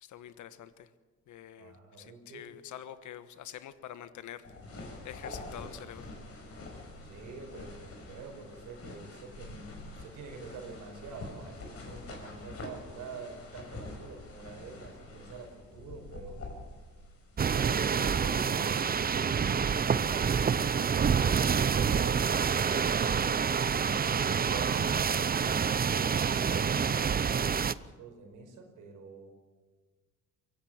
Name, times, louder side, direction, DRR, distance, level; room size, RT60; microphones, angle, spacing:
voice 1, 0.0-0.9 1.3-4.5 4.8-6.1, left 10 dB, 75° left, 12 dB, 1.4 m, -46 dB
voice 2, 1.6-2.5 7.0-9.7 10.0-16.4 17.5-23.5 24.3-29.3, right 4 dB, 85° right, 4 dB, 5.0 m, -46 dB
sound 1, 4.4-17.8, left 2 dB, 50° left, 5.9 m, -46 dB
sound 2, 17.4-27.7, right 6 dB, 30° right, 0.7 m, -27 dB
24.0 x 17.5 x 7.5 m, 1.3 s
cardioid pair, 90°, 30 cm